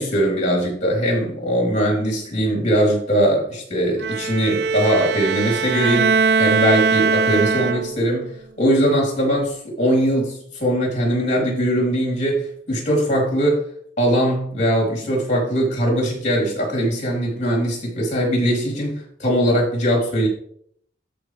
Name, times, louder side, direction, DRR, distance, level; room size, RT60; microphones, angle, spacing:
voice 1, 0.0-13.6 14.0-20.3, equal, 40° left, -2 dB, 3.9 m, -21 dB
Bowed string instrument, 4.0-8.2, right 5 dB, 60° right, 0.3 m, -20 dB
13.5 x 5.1 x 3.4 m, 0.65 s
head